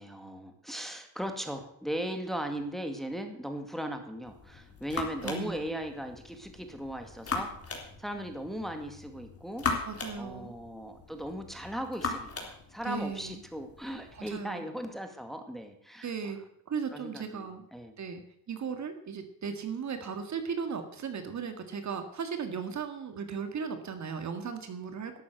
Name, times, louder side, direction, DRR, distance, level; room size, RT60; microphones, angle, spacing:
voice 1, 0.0-9.7 10.2-16.3 16.9-18.0, equal, ahead, 6 dB, 2.0 m, -38 dB
sound 1, 4.2-14.4, left 4 dB, 30° left, 3.8 m, -39 dB
voice 2, 5.2-5.6 9.8-10.5 12.9-13.4 14.1-14.6 16.0-16.4 16.7-17.6 18.0-18.2 18.5-25.2, right 6 dB, 40° right, 8 dB, 1.9 m, -36 dB
12.0 x 8.4 x 8.0 m, 0.72 s
supercardioid pair, 95°, 45 cm